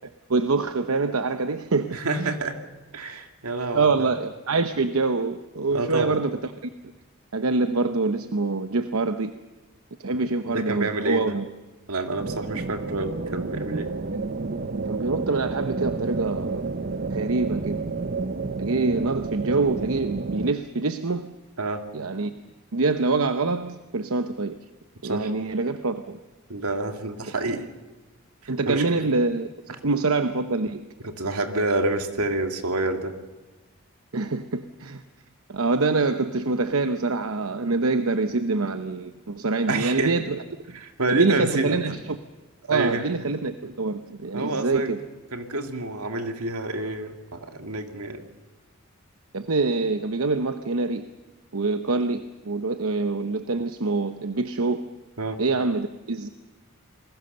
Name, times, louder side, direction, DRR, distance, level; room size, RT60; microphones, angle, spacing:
voice 1, 0.3-2.4 3.7-6.7 7.3-9.3 10.0-11.4 14.1-14.2 14.8-16.6 17.1-17.8 18.6-21.3 21.9-22.3 22.7-24.6 25.0-26.2 27.3-27.4 28.5-29.5 29.8-30.8 34.1-35.0 35.5-40.4 41.1-42.2 42.7-45.0 49.3-51.0 51.5-54.8 55.4-56.3, right 3 dB, 70° right, 9 dB, 0.9 m, -25 dB
voice 2, 1.9-2.6 2.9-3.9 5.7-6.2 10.1-11.4 11.9-13.9 21.6-21.8 25.0-25.3 26.5-27.7 28.4-29.0 31.0-33.1 39.7-40.1 40.7-41.9 42.7-43.0 44.3-44.9 45.3-48.3 55.2-55.4, right 2 dB, 90° right, 5 dB, 2.3 m, -28 dB
sound 1, 12.2-20.5, right 3 dB, 45° right, 0.7 m, -30 dB
28.0 x 21.0 x 6.8 m, 1.2 s
head